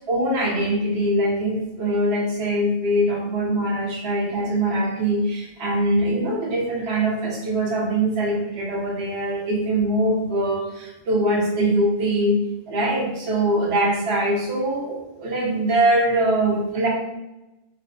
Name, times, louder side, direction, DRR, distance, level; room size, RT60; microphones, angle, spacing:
voice 1, 0.1-12.4 12.7-16.9, right 1 dB, 85° right, -2 dB, 1.0 m, -22 dB
2.5 x 2.3 x 3.6 m, 0.96 s
omnidirectional pair, 1.1 m